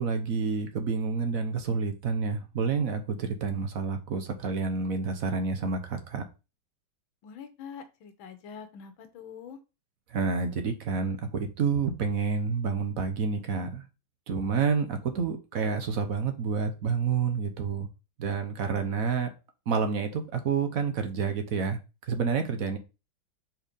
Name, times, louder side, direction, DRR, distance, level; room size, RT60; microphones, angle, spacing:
voice 1, 0.0-6.2 10.1-13.8 14.3-17.9 18.2-19.3 19.7-21.8 22.1-22.8, right 5 dB, 55° right, 6 dB, 1.2 m, -29 dB
voice 2, 7.2-9.6, left 7 dB, 90° left, 8 dB, 1.8 m, -44 dB
4.6 x 4.5 x 5.2 m, 0.29 s
omnidirectional pair, 2.1 m